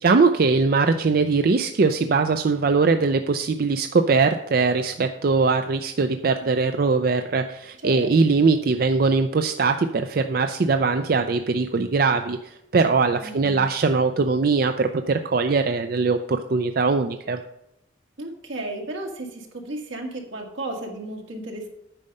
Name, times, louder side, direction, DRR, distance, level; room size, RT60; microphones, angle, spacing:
voice 1, 0.0-17.4, right 4 dB, 50° right, 8 dB, 0.4 m, -21 dB
voice 2, 7.8-8.4 13.2-13.7 18.2-21.7, right 2 dB, 85° right, 1 dB, 2.0 m, -34 dB
9.0 x 5.4 x 6.5 m, 0.84 s
head